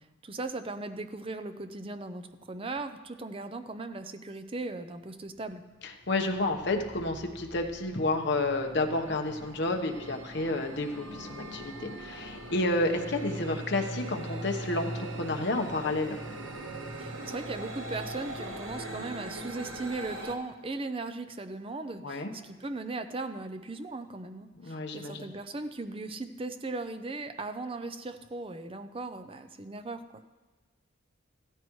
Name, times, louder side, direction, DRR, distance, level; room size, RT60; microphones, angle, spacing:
voice 1, 0.2-5.6 17.0-30.4, right 3 dB, 25° right, 9 dB, 0.6 m, -38 dB
sound 1, 5.4-5.5 5.9-20.3, right 1 dB, 65° right, 1.3 m, -41 dB
voice 2, 6.1-16.2 22.0-22.3 24.6-25.3, left 2 dB, 60° left, 4 dB, 1.1 m, -30 dB
15.5 x 13.5 x 3.1 m, 1.2 s
head